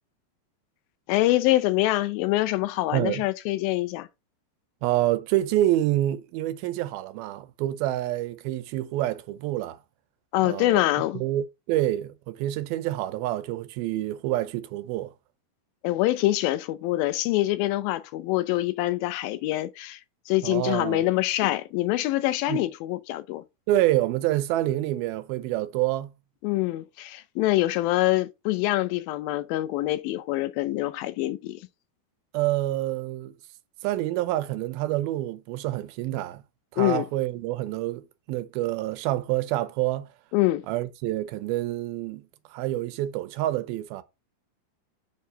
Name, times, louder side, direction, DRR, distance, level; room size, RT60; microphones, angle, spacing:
voice 1, 1.1-4.1 10.3-11.2 15.8-20.0 20.3-23.4 26.4-31.6 36.8-37.1 40.3-40.6, left 16 dB, 80° left, 2.3 m, -25 dB
voice 2, 2.9-3.3 4.8-9.8 10.4-10.8 11.1-15.1 20.4-21.0 22.5-22.6 23.7-26.1 32.3-33.3 33.8-36.4 36.7-40.1 40.7-42.2 42.5-44.0, right 14 dB, 85° right, 2.5 m, -27 dB
7.4 x 3.5 x 5.5 m
omnidirectional pair, 4.3 m